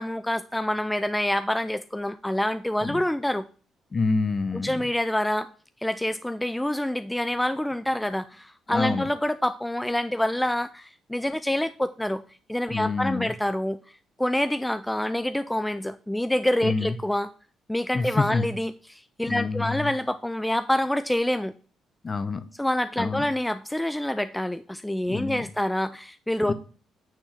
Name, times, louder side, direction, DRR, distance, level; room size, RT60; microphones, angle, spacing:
voice 1, 0.0-3.5 4.5-5.5 5.8-12.2 12.5-13.8 14.2-17.3 17.7-21.5 22.5-26.5, left 1 dB, 5° left, 11 dB, 0.3 m, -27 dB
voice 2, 3.9-4.8 8.7-9.1 12.7-13.3 16.6-16.9 17.9-18.5 19.3-19.9 22.0-22.5 23.0-23.3 25.1-25.4 26.5-26.6, left 4 dB, 35° left, 12 dB, 0.7 m, -27 dB
9.0 x 3.6 x 5.8 m, 0.41 s
cardioid pair, 90°, 0 cm